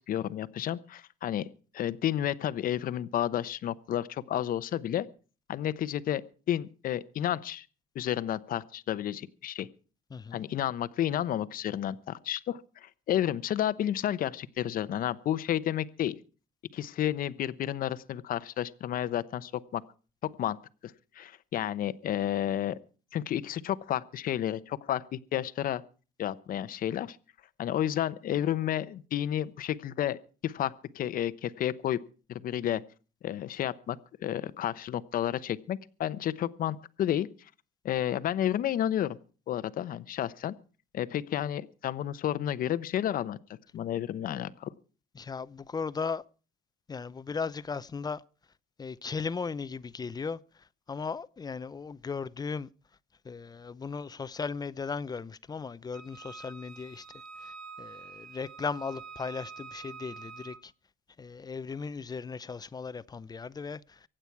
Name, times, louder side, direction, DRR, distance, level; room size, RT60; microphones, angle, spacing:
voice 1, 0.1-1.5 1.7-5.1 5.5-6.2 6.5-7.7 7.9-9.7 10.3-16.1 16.7-19.8 20.2-20.6 20.8-22.8 23.1-25.8 26.2-27.2 27.6-32.0 32.3-32.8 33.2-37.3 37.8-39.2 39.5-40.5 40.9-43.4 43.7-44.7, left 11 dB, 60° left, 0.9 m, -31 dB
voice 2, 10.1-10.4 45.1-46.2 46.9-48.2 48.8-50.4 50.9-52.7 53.2-57.0 57.4-60.7 61.2-64.1, left 5 dB, 25° left, 0.7 m, -37 dB
Wind instrument woodwind instrument, 55.9-60.6, right 5 dB, 60° right, 2.1 m, -46 dB
24.5 x 9.0 x 4.7 m
cardioid pair, 110°, 17 cm